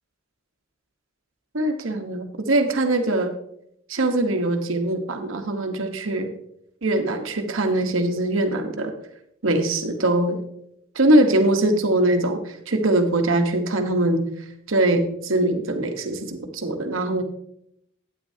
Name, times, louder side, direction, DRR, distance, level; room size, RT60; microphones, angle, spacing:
voice 1, 1.5-3.3 3.9-6.3 6.8-8.9 9.4-10.4 10.9-14.2 14.7-17.2, right 1 dB, 75° right, 5 dB, 1.2 m, -22 dB
12.0 x 9.0 x 2.8 m, 0.76 s
head